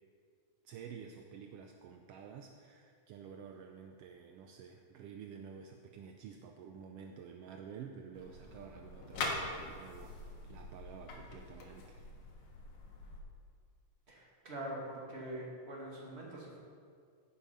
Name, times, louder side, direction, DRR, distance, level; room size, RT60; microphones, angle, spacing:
voice 1, 0.6-12.0, right 7 dB, 80° right, 3 dB, 1.4 m, -50 dB
sound 1, 8.1-13.2, left 2 dB, 85° left, 3.0 m, -43 dB
voice 2, 14.1-16.6, right 1 dB, 25° right, -4 dB, 2.3 m, -44 dB
16.0 x 7.2 x 5.4 m, 2.2 s
omnidirectional pair, 3.4 m